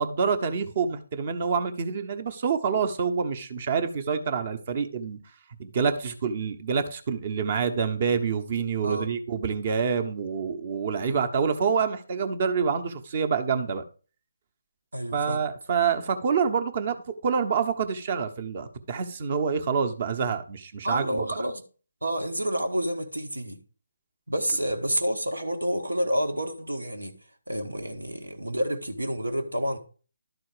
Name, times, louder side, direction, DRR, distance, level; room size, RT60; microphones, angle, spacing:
voice 1, 0.0-5.2 5.6-13.8 15.1-17.0 17.2-21.2, right 6 dB, 40° right, 1.1 m, -27 dB
voice 2, 8.8-9.1 11.0-11.2 14.9-15.4 20.8-21.6 22.0-23.6 24.3-27.1 27.5-29.8, equal, 90° right, 1.5 m, -29 dB
12.0 x 4.2 x 4.9 m
figure-of-eight pair, 150°, 0 cm